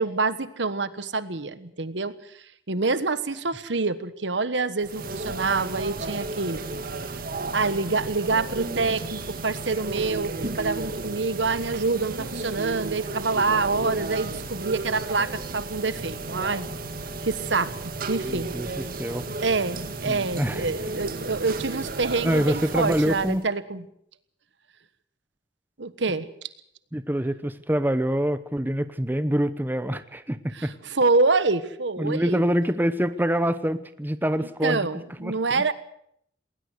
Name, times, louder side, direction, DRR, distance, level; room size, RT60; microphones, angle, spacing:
voice 1, 0.0-2.1 2.7-6.6 7.5-16.7 17.2-17.7 18.1-18.5 19.4-23.9 25.8-26.3 30.5-32.4 34.6-35.7, right 3 dB, 75° right, 14 dB, 1.3 m, -26 dB
sound 1, 4.8-23.4, right 3 dB, 50° right, 1.9 m, -33 dB
voice 2, 18.2-18.7 19.0-19.3 20.1-20.6 22.2-23.4 26.9-30.7 32.0-34.9 35.2-35.7, equal, 10° right, 12 dB, 0.8 m, -25 dB
20.0 x 19.0 x 8.2 m, 0.70 s
head